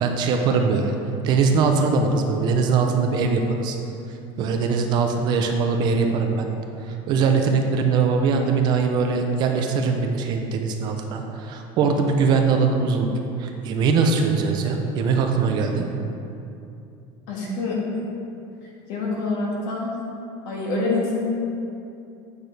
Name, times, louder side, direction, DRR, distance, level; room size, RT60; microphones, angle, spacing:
voice 1, 0.0-0.9 1.2-3.8 4.4-6.5 6.8-13.1 13.4-15.8, right 5 dB, 35° right, 4 dB, 0.5 m, -21 dB
voice 2, 17.3-17.8 18.9-19.9 20.5-21.1, left 3 dB, 55° left, -3 dB, 1.8 m, -26 dB
8.6 x 6.2 x 3.3 m, 2.7 s
cardioid pair, 180°, 13 cm